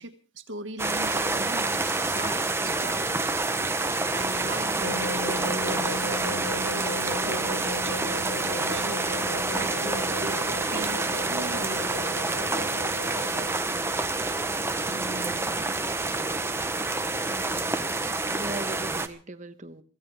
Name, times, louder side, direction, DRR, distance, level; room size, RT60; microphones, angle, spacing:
voice 1, 0.0-3.0 3.6-10.4 10.7-12.2 14.9-15.7, right 2 dB, 60° right, 8 dB, 1.8 m, -40 dB
sound 1, 0.8-19.1, right 2 dB, 10° right, 0.9 m, -28 dB
sound 2, 4.8-13.5, left 1 dB, 65° left, 0.7 m, -36 dB
voice 2, 9.9-10.3 17.3-17.7 18.3-19.8, right 2 dB, 35° right, 10 dB, 1.2 m, -40 dB
Wind instrument woodwind instrument, 10.6-14.1, right 6 dB, 10° left, 3.4 m, -52 dB
24.5 x 16.5 x 3.5 m, 0.38 s
head